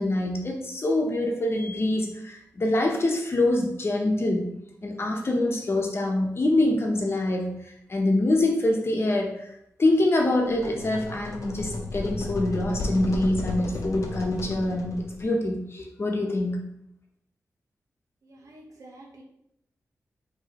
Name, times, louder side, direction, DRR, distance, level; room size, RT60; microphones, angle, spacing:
voice 1, 0.0-4.5 4.8-9.5 9.8-16.7, left 1 dB, 45° left, 1 dB, 0.9 m, -25 dB
sound 1, 10.5-15.3, left 2 dB, 75° left, 0.7 m, -33 dB
voice 2, 18.2-19.2, right 1 dB, 75° right, -1 dB, 1.0 m, -48 dB
4.8 x 3.0 x 2.9 m, 0.77 s
cardioid pair, 75°, 6 cm